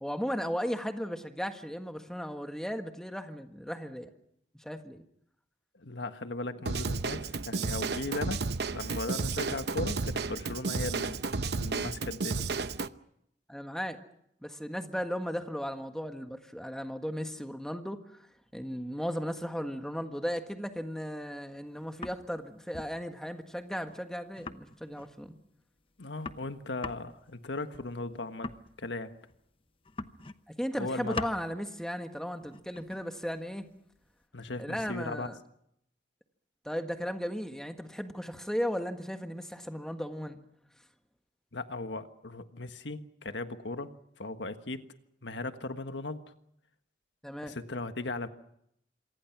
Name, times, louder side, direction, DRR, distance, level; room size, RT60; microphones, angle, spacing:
voice 1, 0.0-4.1 4.6-5.0 13.5-14.0 14.4-18.0 18.5-25.4 30.6-33.6 34.6-35.4 36.6-40.4 47.2-47.5, equal, 5° left, 6 dB, 1.5 m, -36 dB
voice 2, 5.7-8.5 8.7-12.5 26.0-29.1 30.8-31.3 34.3-35.3 41.5-44.8 45.2-46.2 47.4-48.3, left 2 dB, 85° left, 9 dB, 1.5 m, -37 dB
Drum kit / Drum, 6.7-12.9, right 4 dB, 65° right, 0.8 m, -32 dB
sound 1, 21.6-22.4 22.7-23.0 23.3-23.4 23.6-23.7 23.9-24.0 24.3-25.2 25.6-25.7 25.9-29.5 29.8-30.5 30.8-31.5 32.4-34.2, left 3 dB, 30° left, 0.9 m, -43 dB
27.0 x 24.5 x 6.0 m, 0.75 s
head